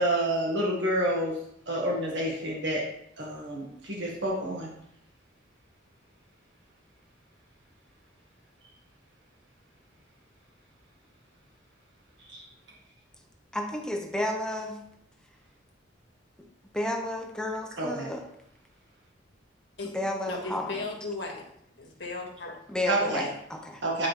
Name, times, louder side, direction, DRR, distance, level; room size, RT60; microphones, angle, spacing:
voice 1, 0.0-1.4 1.7-2.8 3.2-4.7 12.3-12.5 17.8-18.1 22.9-23.2 23.8-24.1, right 1 dB, 65° right, -3 dB, 1.5 m, -28 dB
voice 2, 13.5-14.8 16.7-18.2 19.9-20.7 22.7-23.8, left 1 dB, 5° left, 2 dB, 0.7 m, -32 dB
voice 3, 20.3-21.5 21.8-22.5 23.0-23.1, left 3 dB, 60° left, -1 dB, 1.6 m, -36 dB
9.3 x 4.7 x 3.1 m, 0.72 s
head